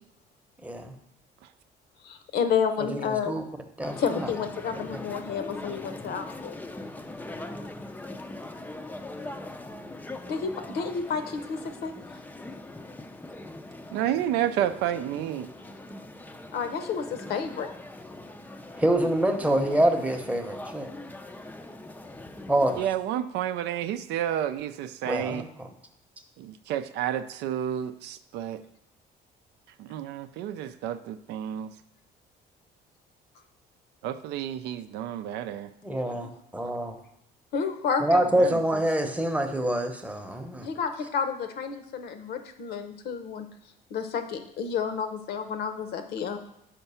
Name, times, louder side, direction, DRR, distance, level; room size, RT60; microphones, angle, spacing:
voice 1, 0.6-0.9 2.8-3.0 3.3-3.4 3.8-4.3 4.9-5.0 18.8-20.9 22.5-22.8 25.0-25.7 35.8-37.0 38.0-40.7, right 1 dB, 10° right, 5 dB, 0.8 m, -26 dB
voice 2, 2.0-3.4 4.0-6.6 10.2-11.9 16.5-17.7 36.0-36.3 37.5-38.2 40.6-43.5 43.9-46.4, left 6 dB, 70° left, 8 dB, 0.8 m, -30 dB
sound 1, 3.8-22.9, left 2 dB, 10° left, 0.4 m, -41 dB
voice 3, 13.9-15.5 22.8-25.4 26.4-28.6 29.8-31.7 34.0-35.7 38.4-38.6, right 11 dB, 85° right, 11 dB, 0.4 m, -30 dB
5.9 x 4.5 x 5.5 m, 0.76 s
cardioid pair, 110°, 17 cm